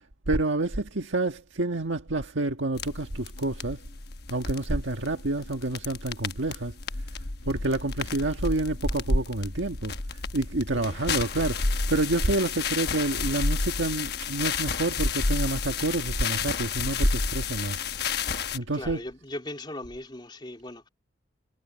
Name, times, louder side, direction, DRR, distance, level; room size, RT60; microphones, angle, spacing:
voice 1, 0.3-3.8 4.3-6.7 7.4-17.8 18.5-19.0, right 2 dB, 90° right, 1.6 m, -28 dB
sound 1, 2.7-18.6, left 4 dB, 55° left, 1.2 m, -31 dB
voice 2, 18.7-20.9, left 1 dB, 25° left, 3.1 m, -39 dB
head